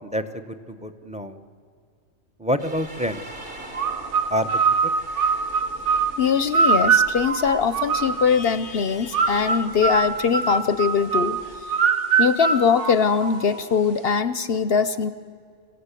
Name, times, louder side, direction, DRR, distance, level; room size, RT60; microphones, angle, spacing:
voice 1, 0.0-1.4 2.4-3.2 4.3-4.5, equal, 5° right, 10 dB, 0.9 m, -27 dB
sound 1, 2.6-11.6, right 1 dB, 50° right, 3.8 m, -44 dB
sound 2, 3.7-8.5 9.1-13.6, right 5 dB, 70° right, 1.4 m, -23 dB
voice 2, 6.2-11.4 12.2-15.1, left 6 dB, 55° left, 13 dB, 0.9 m, -21 dB
26.0 x 16.0 x 8.4 m, 2.2 s
omnidirectional pair, 1.3 m